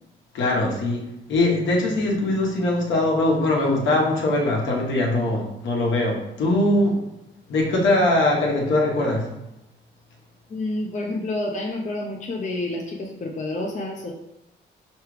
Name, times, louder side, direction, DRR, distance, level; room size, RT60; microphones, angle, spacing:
voice 1, 0.3-7.0 7.5-9.3, left 2 dB, 75° left, -1 dB, 1.3 m, -21 dB
voice 2, 10.5-14.1, left 2 dB, 40° left, 0 dB, 0.6 m, -29 dB
4.7 x 3.2 x 3.3 m, 0.87 s
cardioid pair, 90°, 20 cm